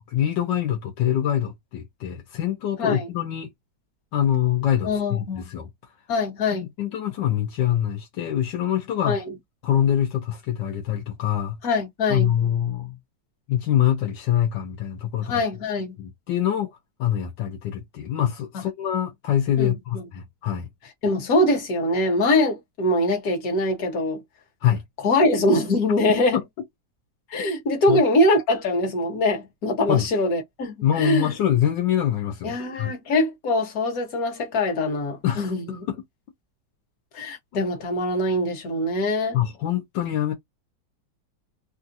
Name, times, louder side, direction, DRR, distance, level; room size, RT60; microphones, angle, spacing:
voice 1, 0.1-3.5 4.1-5.7 6.5-9.2 9.6-11.6 12.1-13.0 13.5-15.3 16.0-20.7 24.6-24.8 26.3-26.4 27.9-28.0 29.9-30.1 30.8-32.9 35.2-36.0 39.3-40.3, left 10 dB, 85° left, 1.4 m, -24 dB
voice 2, 4.8-5.5 6.1-6.7 9.1-9.3 11.6-12.3 15.3-16.0 18.5-18.6 19.6-19.7 21.0-24.2 25.0-26.4 27.3-31.3 32.4-35.8 37.1-39.4, left 1 dB, 55° left, 1.7 m, -23 dB
3.5 x 2.5 x 2.6 m
omnidirectional pair, 1.9 m